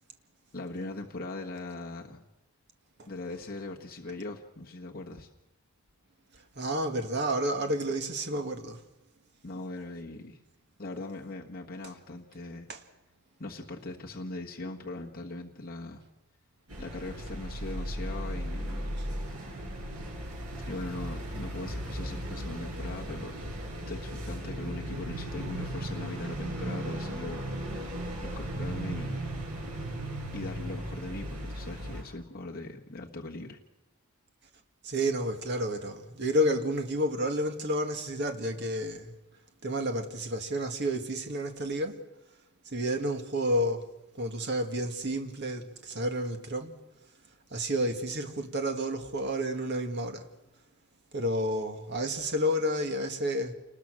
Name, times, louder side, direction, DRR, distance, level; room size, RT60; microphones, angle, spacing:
voice 1, 0.5-2.3 3.1-5.3 9.4-10.4 10.8-12.7 13.4-16.0 16.8-18.9 20.7-27.9 28.2-29.2 30.3-33.6, left 2 dB, 40° left, 1.4 m, -40 dB
voice 2, 6.6-8.8 12.7-12.8 34.8-39.1 39.6-42.0 42.7-43.9 44.2-46.7 47.5-50.3 51.1-53.5, equal, 50° right, 2.0 m, -30 dB
sound 1, 16.7-32.0, right 1 dB, 90° right, 7.2 m, -36 dB
28.0 x 20.5 x 6.3 m
head